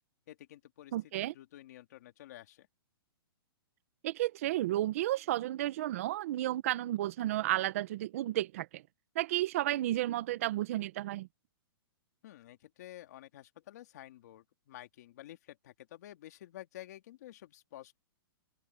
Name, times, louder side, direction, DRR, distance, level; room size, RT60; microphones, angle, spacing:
voice 1, 0.3-0.9 1.2-2.7 12.2-18.0, left 13 dB, 45° left, 2.7 m, -51 dB
voice 2, 0.9-1.3 4.0-8.8 9.1-11.3, right 14 dB, 35° right, 0.9 m, -32 dB
open air
hypercardioid pair, 175°, 13 cm